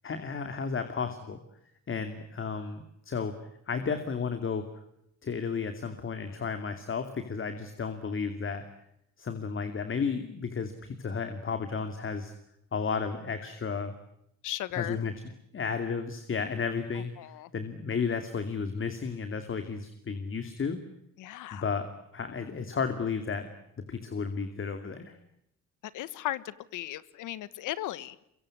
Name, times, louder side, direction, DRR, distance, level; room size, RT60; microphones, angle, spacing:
voice 1, 0.0-1.4 1.9-3.4 3.7-4.7 5.2-8.7 9.2-12.3 12.7-14.0 14.7-15.1 15.5-17.1 17.5-20.8 21.5-23.5 23.9-25.2, left 5 dB, 40° left, 9 dB, 2.7 m, -33 dB
voice 2, 14.4-15.0 17.2-17.5 21.2-21.6 25.9-28.1, left 14 dB, 90° left, 18 dB, 1.4 m, -36 dB
24.0 x 23.0 x 9.8 m, 0.77 s
cardioid pair, 90°, 30 cm